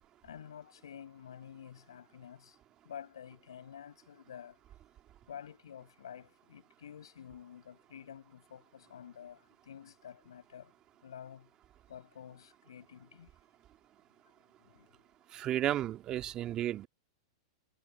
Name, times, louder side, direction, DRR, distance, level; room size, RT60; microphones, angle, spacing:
voice 1, 0.2-2.6 2.8-4.6 5.3-10.7 11.0-11.5 11.9-13.3 14.2-15.1, left 9 dB, 90° left, 6.1 m, -50 dB
voice 2, 15.3-16.9, right 12 dB, 30° right, 1.9 m, -33 dB
hypercardioid pair, 130°, 2 cm